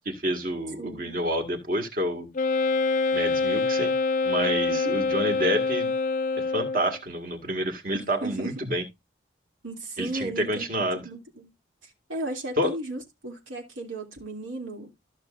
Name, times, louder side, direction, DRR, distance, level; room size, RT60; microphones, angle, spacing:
voice 1, 0.1-2.3 3.1-4.0 4.2-5.9 6.5-8.8 10.0-11.0 12.6-12.7, equal, 45° right, 1.9 m, -28 dB
voice 2, 0.8-1.1 4.7-5.0 7.9-8.6 9.6-10.6 10.9-11.5 11.8-14.9, right 2 dB, 80° right, 2.7 m, -35 dB
Wind instrument woodwind instrument, 2.3-7.0, left 4 dB, 40° left, 0.5 m, -25 dB
14.0 x 6.3 x 2.5 m
head